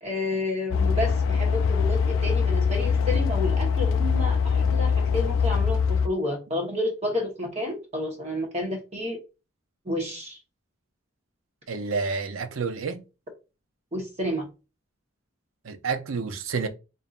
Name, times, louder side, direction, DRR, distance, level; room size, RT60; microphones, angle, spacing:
voice 1, 0.0-9.2 9.9-10.4 13.9-14.4, left 1 dB, 35° right, 1.0 m, -30 dB
sound 1, 0.7-6.1, left 5 dB, 80° left, 0.3 m, -23 dB
voice 2, 11.7-13.0 15.6-16.7, right 4 dB, 85° right, 0.6 m, -29 dB
5.2 x 2.6 x 2.4 m
head